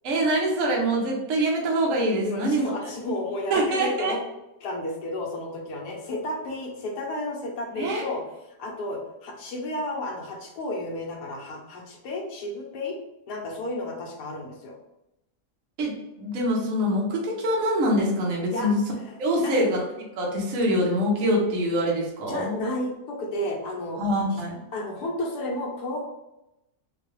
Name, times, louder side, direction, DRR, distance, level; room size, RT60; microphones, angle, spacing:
voice 1, 0.0-2.6 3.5-4.1 7.7-8.0 15.8-18.8 19.2-19.8 20.2-22.5 24.0-24.6, equal, 60° right, -2 dB, 1.2 m, -24 dB
voice 2, 2.2-4.2 4.6-8.2 8.6-13.0 13.3-14.7 18.5-19.6 22.3-24.0 24.3-24.4 24.7-26.0, left 1 dB, 80° left, 0 dB, 1.3 m, -32 dB
3.7 x 2.2 x 3.1 m, 0.90 s
omnidirectional pair, 1.7 m